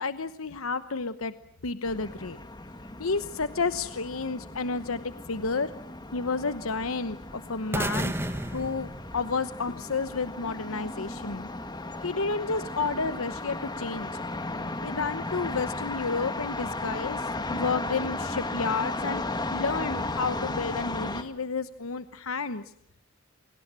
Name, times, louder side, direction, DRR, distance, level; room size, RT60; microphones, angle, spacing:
voice 1, 0.0-1.3 1.6-2.4 3.0-5.0 5.3-5.7 6.1-11.5 12.0-14.1 14.8-22.6, left 4 dB, 85° left, 11 dB, 1.0 m, -31 dB
sound 1, 1.9-21.2, left 2 dB, 20° left, 1.9 m, -35 dB
sound 2, 7.7-9.8, right 1 dB, 10° right, 1.6 m, -32 dB
29.0 x 25.0 x 7.6 m, 0.68 s
head